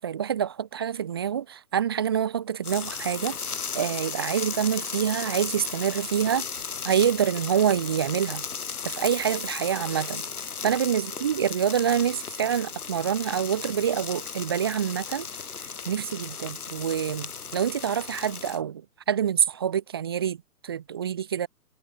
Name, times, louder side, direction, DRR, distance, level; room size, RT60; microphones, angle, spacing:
voice 1, 0.0-6.5 6.8-8.4 8.8-10.3 10.6-15.3 15.6-20.4 20.6-21.5, right 8 dB, 15° right, 1.0 m, -26 dB
sound 1, 2.6-18.6, left 6 dB, 65° left, 7.4 m, -35 dB
hypercardioid pair, 170°, 47 cm